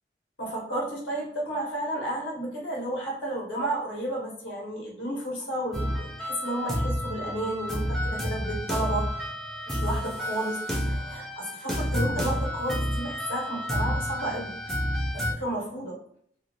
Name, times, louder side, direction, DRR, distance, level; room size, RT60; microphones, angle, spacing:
voice 1, 0.4-9.2 9.7-14.5 15.1-16.0, right 1 dB, 85° left, -3 dB, 1.3 m, -32 dB
sound 1, 5.7-15.3, equal, ahead, 0.4 m, -30 dB
2.9 x 2.7 x 2.4 m, 0.62 s
head